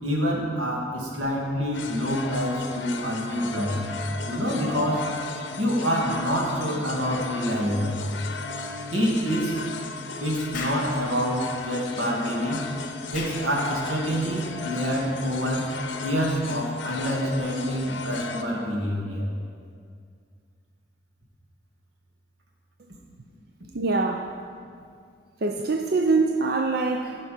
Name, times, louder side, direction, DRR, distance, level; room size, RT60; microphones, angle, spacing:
voice 1, 0.0-3.8 4.3-5.1 5.6-8.0 8.9-9.6 10.2-12.6 13.1-15.7 16.0-19.3, equal, 90° right, -2 dB, 2.3 m, -27 dB
sound 1, 1.7-18.4, left 3 dB, 70° left, 0.8 m, -35 dB
Explosion, 10.5-10.9 13.1-13.4, left 3 dB, 45° left, 1.3 m, -34 dB
voice 2, 23.7-24.4 25.4-27.3, right 3 dB, 55° right, 3 dB, 0.5 m, -24 dB
15.5 x 5.9 x 5.1 m, 2.2 s
head